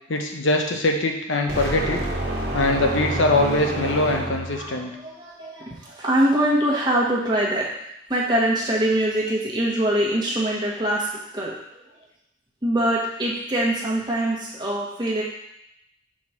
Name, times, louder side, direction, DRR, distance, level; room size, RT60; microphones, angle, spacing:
voice 1, 0.1-2.0 2.5-4.9, left 2 dB, 85° left, 3 dB, 0.9 m, -22 dB
sound 1, 1.5-4.7, right 1 dB, 55° right, 1.4 m, -28 dB
voice 2, 4.5-7.7 8.1-11.5 12.6-15.2, right 1 dB, 25° right, -4 dB, 1.3 m, -23 dB
4.8 x 4.2 x 5.8 m, 0.82 s
head